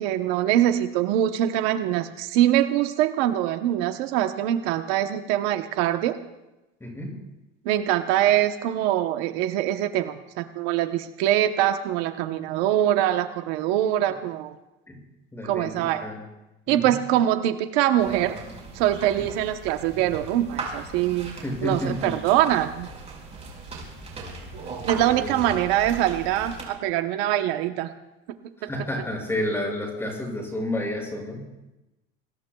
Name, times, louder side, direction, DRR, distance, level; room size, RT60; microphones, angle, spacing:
voice 1, 0.0-6.2 7.6-14.6 15.4-16.1 16.7-18.4 18.7-21.4 21.6-22.9 24.5-27.9 28.6-28.7, right 12 dB, 75° right, 8 dB, 1.0 m, -23 dB
voice 2, 6.8-7.1 14.9-15.0 15.3-15.7 16.0-16.2 16.7-16.9 21.4-22.1 25.2-25.3 28.6-31.4, left 1 dB, 10° left, -1 dB, 6.3 m, -30 dB
sound 1, 18.0-26.6, right 3 dB, 20° right, 4.9 m, -38 dB
26.5 x 20.5 x 2.3 m, 0.99 s
cardioid pair, 155°, 32 cm